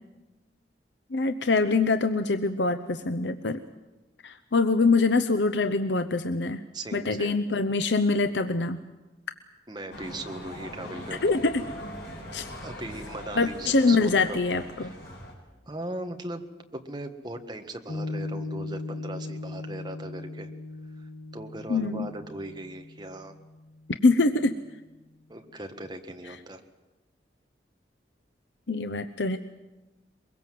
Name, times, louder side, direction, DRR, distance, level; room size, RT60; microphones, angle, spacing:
voice 1, 1.1-3.6 4.2-6.6 6.9-8.8 11.2-11.6 12.3-12.5 13.4-14.9 21.7-22.1 24.0-24.6 28.7-29.4, left 3 dB, 80° left, 9 dB, 0.8 m, -24 dB
voice 2, 6.7-7.4 9.7-11.4 12.6-14.4 14.8-15.0 15.7-16.5 16.7-20.5 21.0-23.3 25.3-26.6, right 1 dB, 25° right, 5 dB, 1.7 m, -39 dB
sound 1, 9.9-15.3, left 1 dB, 60° left, 7.0 m, -41 dB
Piano, 17.9-24.6, left 2 dB, 40° left, 1.6 m, -38 dB
23.0 x 22.5 x 7.7 m, 1.1 s
head